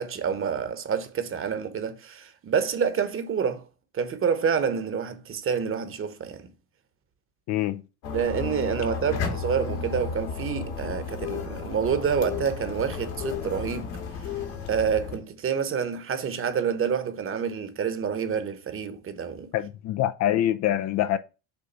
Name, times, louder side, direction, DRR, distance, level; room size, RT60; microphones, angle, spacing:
voice 1, 0.0-3.6 3.9-6.5 8.1-14.3 14.7-19.5, right 7 dB, 30° right, 1.0 m, -28 dB
voice 2, 7.5-7.8 19.5-21.2, left 12 dB, 45° left, 0.4 m, -25 dB
sound 1, 8.0-15.2, left 6 dB, 65° left, 2.0 m, -33 dB
6.9 x 2.5 x 5.4 m
supercardioid pair, 100°, 42 cm